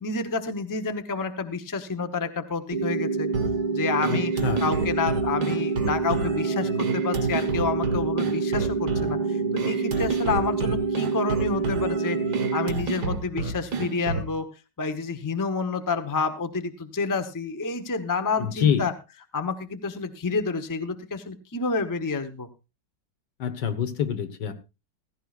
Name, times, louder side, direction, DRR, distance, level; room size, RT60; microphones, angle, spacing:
voice 1, 0.0-3.3 3.7-4.3 4.6-12.2 12.5-14.5 14.8-18.9 19.3-22.5, left 4 dB, 15° left, 8 dB, 0.7 m, -29 dB
sound 1, 2.7-12.7, right 4 dB, 40° right, 0.6 m, -27 dB
sound 2, 3.3-14.3, right 4 dB, 60° right, 2.2 m, -31 dB
voice 2, 4.1-4.7 18.4-18.9 23.4-24.5, left 8 dB, 70° left, 9 dB, 1.9 m, -26 dB
16.0 x 15.5 x 2.4 m, 0.28 s
omnidirectional pair, 1.9 m